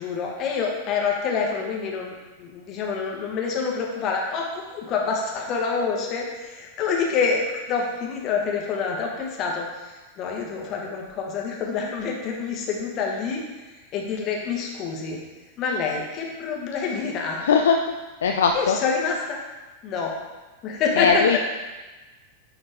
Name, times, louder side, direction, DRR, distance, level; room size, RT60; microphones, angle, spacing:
voice 1, 0.0-9.7 10.2-13.4 13.9-15.2 15.6-17.4 18.5-19.4 19.8-20.1 20.6-21.2, left 5 dB, 35° left, 0 dB, 1.3 m, -27 dB
voice 2, 17.4-17.8 18.2-18.8 21.0-21.4, left 6 dB, 65° left, 4 dB, 0.4 m, -19 dB
9.6 x 4.0 x 3.5 m, 1.2 s
figure-of-eight pair, 90°, 0 cm